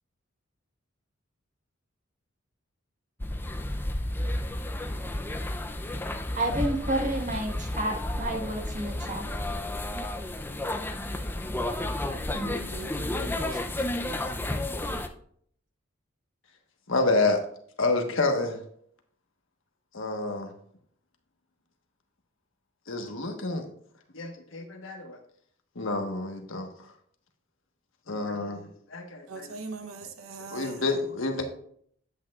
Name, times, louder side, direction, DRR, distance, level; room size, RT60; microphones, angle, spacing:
sound 1, 3.2-15.1, left 1 dB, 10° left, 0.5 m, -32 dB
voice 1, 6.4-9.3 12.3-12.6, right 1 dB, 40° right, 1.5 m, -30 dB
voice 2, 12.3-14.0 29.3-30.8, right 4 dB, 90° right, 0.9 m, -42 dB
voice 3, 16.9-17.4 17.8-18.6 19.9-20.5 22.9-23.7 24.1-25.2 25.8-26.7 28.1-28.6 28.9-29.5 30.5-31.4, left 3 dB, 70° left, 1.3 m, -28 dB
10.0 x 8.4 x 2.4 m
head